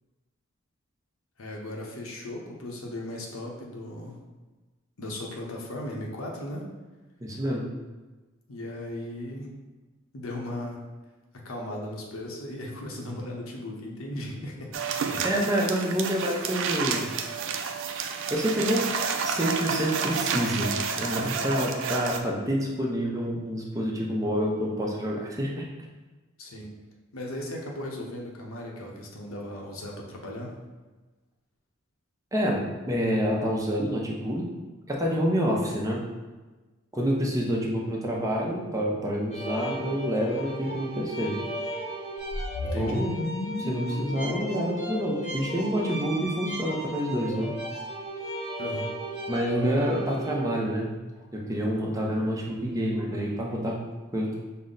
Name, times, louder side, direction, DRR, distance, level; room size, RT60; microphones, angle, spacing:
voice 1, 1.4-4.2 5.0-6.7 8.5-9.5 10.1-10.8 11.4-14.8 15.0-15.2 26.4-26.7 27.1-30.5 42.6-43.0 48.6-48.9, left 1 dB, 85° left, -1 dB, 0.8 m, -37 dB
voice 2, 7.2-7.7 15.2-17.1 17.9-18.9 19.2-25.6 32.3-34.4 34.9-36.0 36.9-41.4 42.8-43.1 43.6-47.5 49.3-50.9 51.3-53.8 54.1-54.4, equal, 15° right, -2 dB, 0.6 m, -28 dB
sound 1, 14.7-22.2, right 5 dB, 65° right, 0.4 m, -30 dB
sound 2, 39.3-50.6, right 1 dB, 30° left, 1.0 m, -36 dB
sound 3, 42.2-46.5, left 2 dB, 50° left, 0.3 m, -35 dB
5.4 x 2.1 x 3.8 m, 1.2 s
head